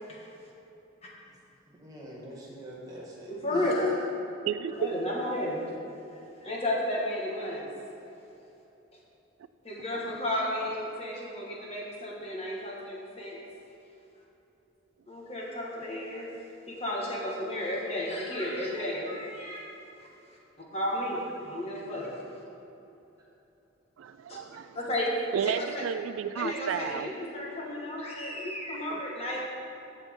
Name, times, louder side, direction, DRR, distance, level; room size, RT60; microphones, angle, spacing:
voice 1, 1.7-3.8 4.7-4.8 6.4-6.5, right 1 dB, 20° right, -5 dB, 1.9 m, -44 dB
voice 2, 3.3-3.9 4.8-5.6 6.4-7.7 9.6-13.4 15.1-16.3 16.7-19.7 20.7-22.2 24.3-24.4 24.7-25.9 26.4-29.4, left 1 dB, 30° left, -3 dB, 1.7 m, -32 dB
voice 3, 24.0-24.8 25.3-27.1 28.9-29.0, right 8 dB, 85° right, 13 dB, 0.3 m, -33 dB
15.0 x 7.2 x 3.8 m, 3.0 s
head